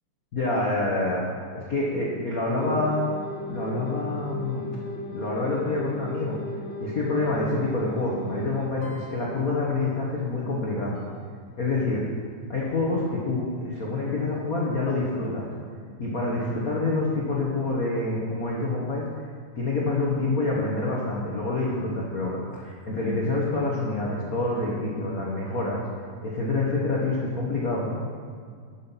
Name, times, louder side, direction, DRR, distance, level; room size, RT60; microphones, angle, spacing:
voice 1, 0.3-1.2 1.5-3.1 3.5-4.7 5.1-6.4 6.8-11.0 11.6-12.1 12.5-15.5 16.0-19.3 19.5-25.8 26.2-28.0, left 2 dB, 75° left, -4 dB, 0.8 m, -27 dB
sound 1, 2.6-9.2 10.9-11.1, left 1 dB, 50° left, 1.5 m, -37 dB
11.0 x 8.7 x 5.8 m, 2.1 s
omnidirectional pair, 3.9 m